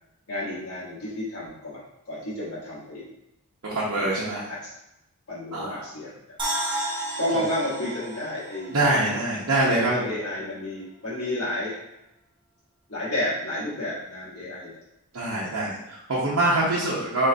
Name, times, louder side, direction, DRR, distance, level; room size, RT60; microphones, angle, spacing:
voice 1, 0.3-3.1 3.9-4.1 4.5-4.6 5.3-6.2 7.2-8.9 9.9-11.7 12.9-14.8, left 1 dB, 80° left, -9 dB, 1.4 m, -31 dB
voice 2, 3.7-4.4 5.5-5.8 8.7-10.1 15.1-17.3, right 2 dB, 75° right, -7 dB, 1.0 m, -24 dB
sound 1, 6.4-9.6 9.9-10.0, right 1 dB, 20° right, 0.7 m, -32 dB
4.3 x 3.8 x 2.8 m, 0.87 s
head